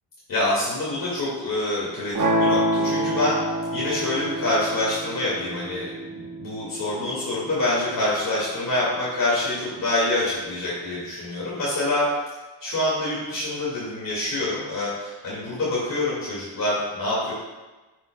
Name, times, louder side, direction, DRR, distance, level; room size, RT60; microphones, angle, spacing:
voice 1, 0.3-3.4 3.7-12.0 12.6-17.3, left 2 dB, 50° left, -8 dB, 2.5 m, -26 dB
sound 1, 2.1-8.2, right 1 dB, 50° right, 1.4 m, -27 dB
11.0 x 7.6 x 2.4 m, 1.2 s
wide cardioid pair, 130°, 41 cm